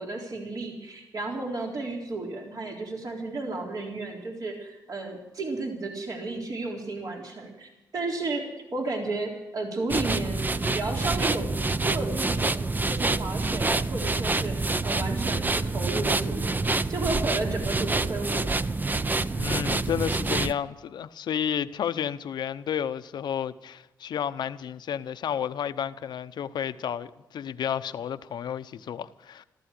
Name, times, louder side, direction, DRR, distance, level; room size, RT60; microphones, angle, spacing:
voice 1, 0.0-12.6 12.9-18.6, right 2 dB, 55° right, 3.9 m, -33 dB
sound 1, 9.9-20.5, right 3 dB, 25° right, 0.7 m, -27 dB
voice 2, 19.4-29.4, left 9 dB, 70° left, 0.8 m, -31 dB
14.5 x 14.5 x 6.6 m
cardioid pair, 70°, 8 cm